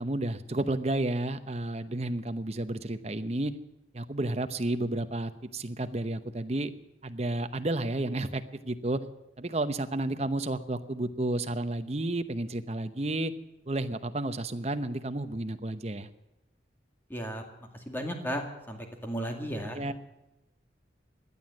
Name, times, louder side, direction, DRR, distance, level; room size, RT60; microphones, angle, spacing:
voice 1, 0.0-3.5 3.9-6.7 7.0-9.0 9.4-13.3 13.7-16.1 19.7-19.9, right 2 dB, 35° right, 10 dB, 0.9 m, -31 dB
voice 2, 17.1-17.4 17.7-19.8, equal, 10° left, 3 dB, 2.1 m, -35 dB
17.0 x 11.0 x 7.7 m, 0.96 s
head